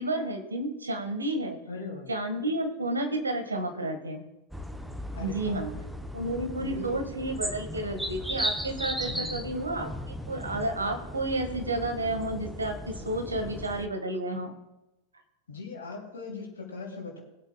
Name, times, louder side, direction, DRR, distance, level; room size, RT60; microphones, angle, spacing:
voice 1, 0.0-1.6 2.1-4.2 5.2-5.7 6.1-9.9 10.3-14.5, right 1 dB, 75° right, 5 dB, 1.7 m, -31 dB
voice 2, 1.7-2.1 5.1-5.6 6.5-7.0 9.0-9.6 15.5-17.2, left 4 dB, 65° left, -3 dB, 3.1 m, -40 dB
sound 1, 4.5-13.9, equal, 5° right, 0.8 m, -37 dB
21.5 x 8.1 x 2.3 m, 0.98 s
figure-of-eight pair, 90°, 0 cm